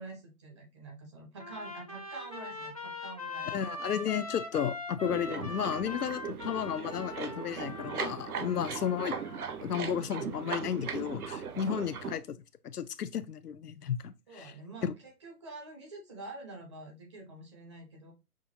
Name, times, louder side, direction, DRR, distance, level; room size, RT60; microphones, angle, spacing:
voice 1, 0.0-3.7 11.5-12.0 14.3-18.1, right 2 dB, 20° right, 0.6 m, -47 dB
Trumpet, 1.4-9.5, left 3 dB, 25° left, 0.4 m, -42 dB
voice 2, 3.5-9.2 9.6-12.4 12.6-14.5 14.8-14.9, left 8 dB, 75° left, 0.6 m, -33 dB
sound 1, 5.0-12.2, right 6 dB, 70° right, 0.7 m, -39 dB
6.0 x 2.2 x 2.7 m
figure-of-eight pair, 135°, 46 cm